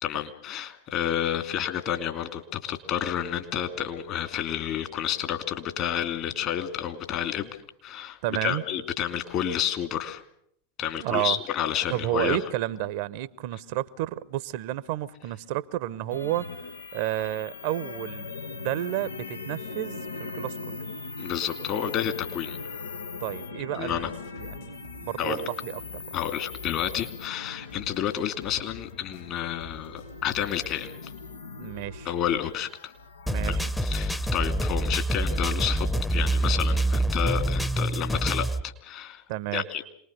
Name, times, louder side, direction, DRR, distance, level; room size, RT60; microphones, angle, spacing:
voice 1, 0.0-7.5 7.8-10.2 10.8-12.4 21.2-22.6 23.7-24.1 25.2-25.4 26.1-31.1 32.0-32.9 33.4-33.6 33.8-39.2 39.5-39.8, left 10 dB, 45° left, 2.5 m, -30 dB
voice 2, 8.2-8.6 11.0-11.4 11.9-16.6 16.9-20.8 23.2-25.8 31.6-32.1 33.3-33.7 39.3-39.6, right 14 dB, 55° right, 0.8 m, -31 dB
sound 1, 16.1-33.7, left 4 dB, 85° left, 0.9 m, -40 dB
sound 2, 23.7-31.2, left 10 dB, 65° left, 7.7 m, -50 dB
sound 3, 33.3-38.6, right 1 dB, 5° left, 0.9 m, -26 dB
27.0 x 20.0 x 6.7 m
figure-of-eight pair, 85°, 0 cm